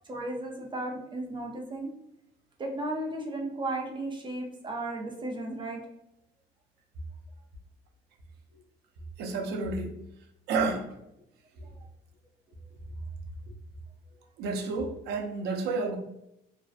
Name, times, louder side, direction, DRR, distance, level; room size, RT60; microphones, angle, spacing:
voice 1, 0.1-1.9 2.6-5.8 11.5-11.7, right 2 dB, 30° right, 0 dB, 0.5 m, -35 dB
voice 2, 9.2-10.0 10.5-10.9 14.4-16.0, right 4 dB, 75° right, 3 dB, 0.5 m, -30 dB
2.5 x 2.0 x 2.4 m, 0.81 s
cardioid pair, 110°, 17 cm